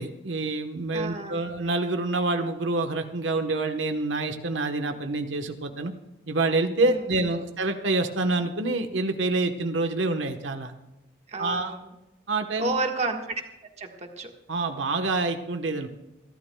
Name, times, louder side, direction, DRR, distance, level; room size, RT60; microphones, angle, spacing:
voice 1, 0.0-5.9 6.3-10.7 11.4-11.7 12.3-12.7 14.5-15.9, right 2 dB, 85° right, 6 dB, 1.1 m, -27 dB
voice 2, 0.9-1.5 6.8-7.4 11.3-11.9 12.6-13.4 13.8-14.3, right 3 dB, 35° right, 3 dB, 1.5 m, -31 dB
28.0 x 12.5 x 2.3 m, 0.98 s
head